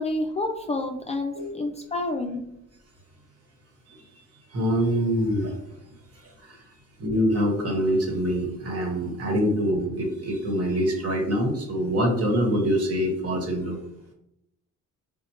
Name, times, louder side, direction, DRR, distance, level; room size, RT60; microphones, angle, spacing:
voice 1, 0.0-2.4, left 2 dB, 20° left, 3 dB, 0.3 m, -29 dB
voice 2, 4.5-5.5 7.0-13.8, equal, 55° right, 1 dB, 1.1 m, -24 dB
4.2 x 2.1 x 2.8 m, 0.81 s
cardioid pair, 90°, 30 cm